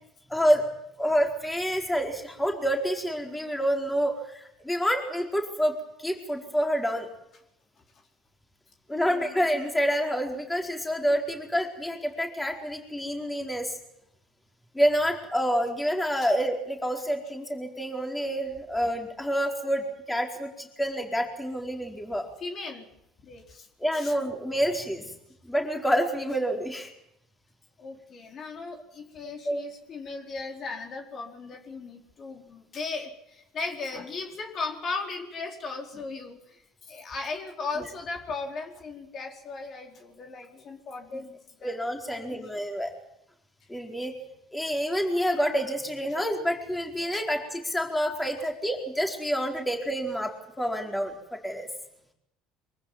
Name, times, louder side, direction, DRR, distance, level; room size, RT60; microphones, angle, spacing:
voice 1, 0.3-0.6 1.0-7.1 8.9-13.7 14.7-22.3 23.8-25.1 25.4-26.9 29.4-29.6 41.6-42.9 43.7-44.1 44.5-51.7, equal, 10° left, 2 dB, 4.4 m, -28 dB
voice 2, 8.9-9.3 22.4-22.9 23.2-23.7 23.9-24.1 27.8-41.8 42.1-42.5 47.1-47.2, left 4 dB, 45° left, 2 dB, 4.7 m, -37 dB
24.0 x 15.0 x 9.5 m, 0.81 s
supercardioid pair, 80°, 0 cm